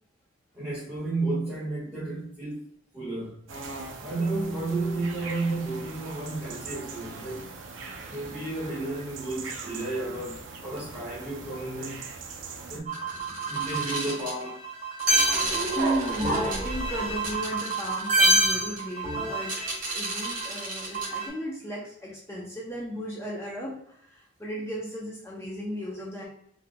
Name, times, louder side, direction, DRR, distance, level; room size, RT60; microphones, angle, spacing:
voice 1, 0.5-2.7 2.9-3.4 4.0-7.5 8.1-12.0 12.7-12.9 13.5-14.6, right 2 dB, 10° right, -11 dB, 1.3 m, -32 dB
sound 1, 3.5-12.8, right 4 dB, 70° right, 0.6 m, -41 dB
sound 2, 12.9-21.3, right 2 dB, 40° right, 1.4 m, -27 dB
voice 2, 15.7-19.5 19.9-26.2, right 1 dB, 15° left, -4 dB, 0.6 m, -35 dB
4.1 x 2.7 x 2.2 m, 0.68 s
head